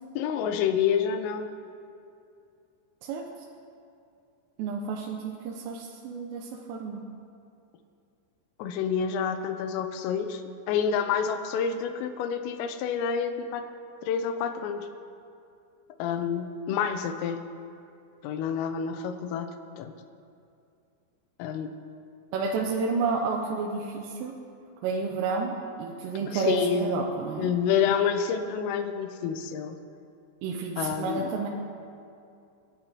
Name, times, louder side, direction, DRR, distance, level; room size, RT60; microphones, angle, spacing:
voice 1, 0.2-1.5 8.6-13.7 14.0-14.9 16.0-17.4 18.2-19.9 21.4-21.7 26.3-27.1 27.4-29.8 30.8-31.3, left 7 dB, 85° left, 7 dB, 3.4 m, -28 dB
voice 2, 4.6-7.0 22.3-24.3 24.8-27.5 30.4-31.5, right 4 dB, 85° right, -1 dB, 3.4 m, -30 dB
29.0 x 11.0 x 3.2 m, 2.5 s
omnidirectional pair, 6.0 m